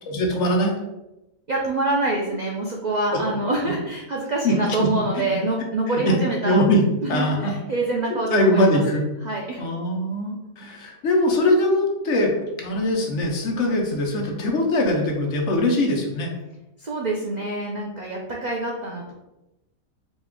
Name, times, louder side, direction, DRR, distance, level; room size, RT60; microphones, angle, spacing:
voice 1, 0.1-0.8 3.1-3.2 4.4-4.6 5.2-5.4 5.9-6.1 6.4-6.8 7.1-7.5 8.1-9.0 9.6-16.3, left 1 dB, 60° left, 1 dB, 1.0 m, -22 dB
voice 2, 1.5-6.6 7.0-8.8 9.2-9.6 16.8-19.1, right 2 dB, 85° right, -1 dB, 0.3 m, -26 dB
4.1 x 2.3 x 3.5 m, 0.95 s
omnidirectional pair, 1.5 m